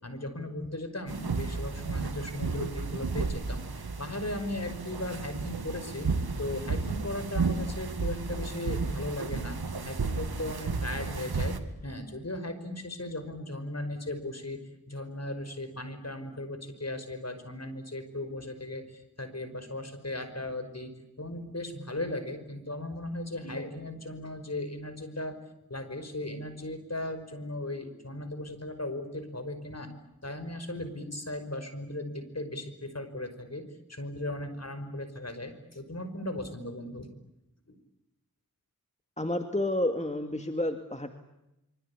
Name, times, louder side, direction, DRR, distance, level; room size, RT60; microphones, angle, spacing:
voice 1, 0.0-6.1 6.4-9.6 9.8-11.6 11.8-14.6 14.9-20.9 21.2-25.4 25.7-29.9 30.2-33.6 33.9-37.1 37.7-37.8, left 1 dB, 45° left, 9 dB, 5.5 m, -37 dB
sound 1, 1.1-11.6, right 4 dB, 85° right, 2.1 m, -33 dB
voice 2, 39.2-41.1, left 1 dB, 20° left, 6 dB, 2.3 m, -30 dB
26.5 x 24.5 x 8.6 m, 0.89 s
cardioid pair, 40°, 37 cm